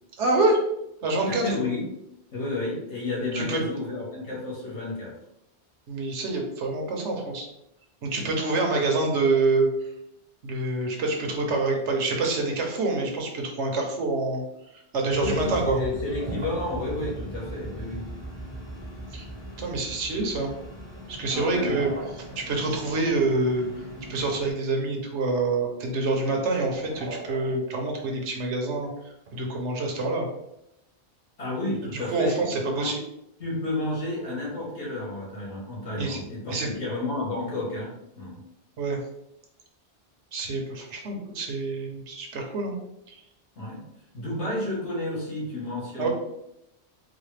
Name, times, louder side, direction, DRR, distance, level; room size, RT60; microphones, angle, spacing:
voice 1, 0.2-0.6 1.0-1.4 3.3-3.6 5.9-7.5 8.0-9.7 10.4-14.4 14.9-15.8 19.1-19.3 19.6-20.5 21.1-21.9 22.4-23.7 24.1-28.9 29.3-30.3 31.9-33.0 36.0-36.2 36.5-36.7 38.8-39.0 40.3-42.8 43.1-43.2 46.0-46.1, right 3 dB, 80° right, 1 dB, 1.1 m, -26 dB
voice 2, 1.4-1.8 2.3-5.1 15.2-18.1 21.3-21.8 31.4-32.9 33.4-38.4 43.6-43.8 44.1-46.1, left 2 dB, 85° left, -5 dB, 1.8 m, -31 dB
sound 1, 15.1-24.5, right 1 dB, 55° left, 1.4 m, -39 dB
sound 2, 16.1-17.2 21.3-23.1 23.5-24.1 24.4-24.6 25.0-25.6 26.2-26.3 26.5-28.0 28.8-29.5, right 2 dB, 55° right, 0.8 m, -41 dB
4.0 x 2.2 x 3.2 m, 0.82 s
omnidirectional pair, 1.2 m